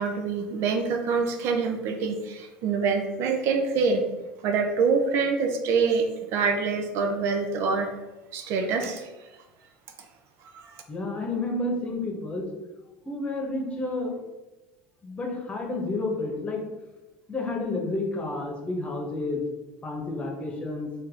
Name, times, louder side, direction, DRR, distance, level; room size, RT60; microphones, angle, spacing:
voice 1, 0.0-4.0 4.4-6.1 6.3-7.9 8.3-9.1 10.5-10.7, right 5 dB, 55° right, 4 dB, 0.6 m, -25 dB
voice 2, 10.9-12.5 13.0-14.2 15.0-16.6 17.3-19.4 19.8-20.9, left 2 dB, 25° left, 0 dB, 1.2 m, -30 dB
4.6 x 2.7 x 3.7 m, 1.1 s
hypercardioid pair, 85°, 5 cm